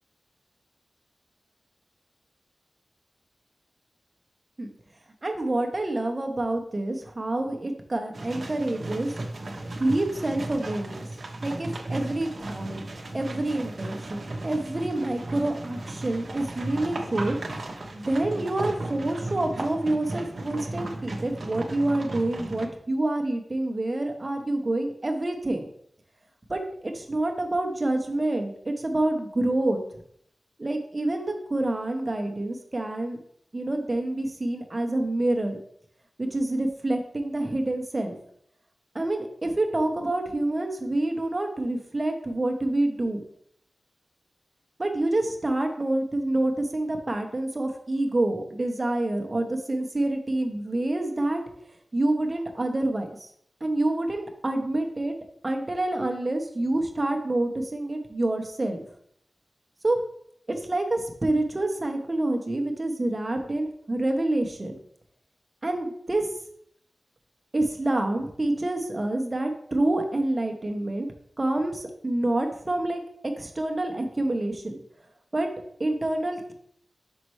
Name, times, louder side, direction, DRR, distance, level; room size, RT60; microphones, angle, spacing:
voice 1, 5.2-9.1 9.8-11.1 11.4-12.7 13.1-17.4 17.9-25.6 26.5-29.8 30.6-33.2 33.5-35.6 36.2-38.1 38.9-43.2 44.8-51.4 51.9-53.3 53.6-55.1 55.4-58.8 59.8-60.0 60.7-64.7 65.6-66.3 67.5-71.1 71.4-73.0 73.4-74.8 75.3-75.5 75.8-76.5, right 2 dB, 40° right, 4 dB, 1.0 m, -27 dB
sound 1, 8.1-22.7, right 2 dB, 65° right, 1.0 m, -35 dB
5.8 x 5.4 x 3.2 m, 0.67 s
cardioid pair, 45°, 0 cm